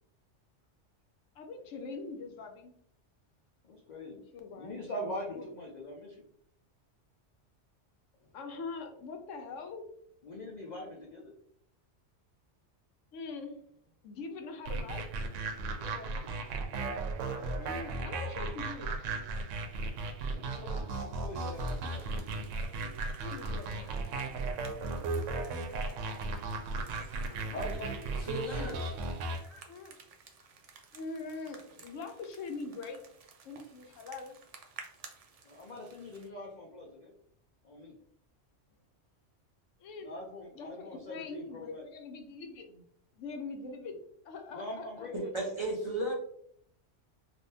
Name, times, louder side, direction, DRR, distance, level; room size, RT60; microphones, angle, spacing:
voice 1, 1.3-2.7 4.3-5.1 5.3-5.4 8.2-9.8 13.1-13.5 14.0-15.0 17.5-18.9 23.2-24.1 27.3-27.8 29.6-29.9 30.9-33.0 33.4-34.4 39.8-40.1 40.5-42.8 43.2-45.1, left 4 dB, 85° left, 4 dB, 1.0 m, -43 dB
voice 2, 3.6-4.2 4.6-6.2 10.2-11.3 15.7-16.3 20.2-22.2 27.5-28.3 35.4-37.1 37.6-37.9 40.0-41.8 44.5-45.7, left 1 dB, 55° left, -2 dB, 0.5 m, -43 dB
sound 1, 14.7-29.4, right 3 dB, 85° right, 0.9 m, -36 dB
sound 2, 21.5-36.3, right 5 dB, 70° right, 0.3 m, -55 dB
voice 3, 28.2-29.1 29.4-29.6 45.1-46.1, right 1 dB, 30° right, -5 dB, 0.6 m, -35 dB
3.5 x 2.5 x 2.6 m, 0.67 s
omnidirectional pair, 1.3 m